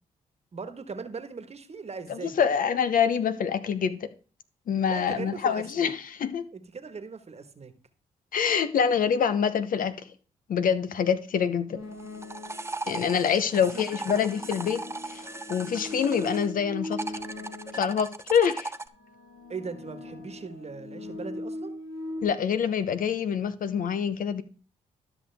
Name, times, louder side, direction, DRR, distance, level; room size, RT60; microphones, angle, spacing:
voice 1, 0.5-2.6 4.9-5.9 6.5-7.7 13.7-14.2 19.5-21.7, right 5 dB, 45° right, 1.4 m, -39 dB
voice 2, 2.1-4.1 4.7-5.9 6.2-6.5 8.3-9.9 10.5-11.8 12.9-14.8 15.1-17.0 17.7-18.7 22.2-24.4, left 7 dB, 65° left, 0.8 m, -26 dB
sound 1, 11.7-12.8 13.6-18.1 18.8-22.2, left 1 dB, 90° left, 2.3 m, -40 dB
sound 2, 11.9-16.5 16.8-18.9, right 3 dB, 15° right, 0.7 m, -37 dB
12.5 x 6.0 x 3.4 m
supercardioid pair, 50°, 15 cm